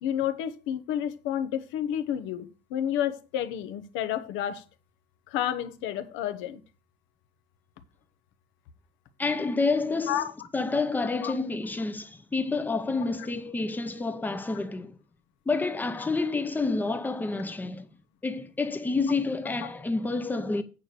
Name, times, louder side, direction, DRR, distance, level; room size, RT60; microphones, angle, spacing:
voice 1, 0.0-4.6 5.3-6.6 10.1-10.3 11.2-11.3, left 10 dB, 85° left, 1.2 m, -30 dB
voice 2, 9.2-10.2 10.5-15.0 15.5-17.9 18.2-20.6, left 3 dB, 10° left, 0.6 m, -29 dB
8.7 x 4.7 x 6.8 m
cardioid pair, 175°, 20 cm